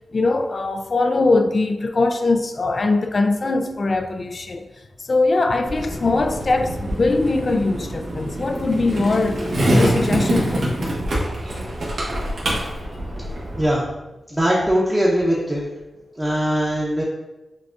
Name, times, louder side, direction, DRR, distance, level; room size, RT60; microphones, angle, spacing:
voice 1, 0.1-4.6 5.0-10.8, left 3 dB, 50° left, 0.3 m, -21 dB
Skateboard, 5.7-13.7, right 1 dB, 70° right, 1.1 m, -25 dB
voice 2, 14.3-15.6 16.2-17.0, equal, 15° right, 0.8 m, -20 dB
6.1 x 2.3 x 2.5 m
cardioid pair, 65°, 0 cm